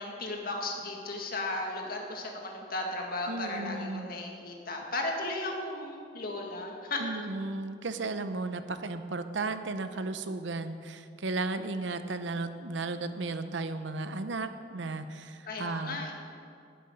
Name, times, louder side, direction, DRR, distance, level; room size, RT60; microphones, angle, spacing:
voice 1, 0.0-7.0 15.5-16.1, left 2 dB, 55° left, 1 dB, 2.0 m, -35 dB
voice 2, 3.3-4.1 7.0-16.1, right 3 dB, 85° right, 10 dB, 0.8 m, -35 dB
11.5 x 7.7 x 9.7 m, 2.5 s
head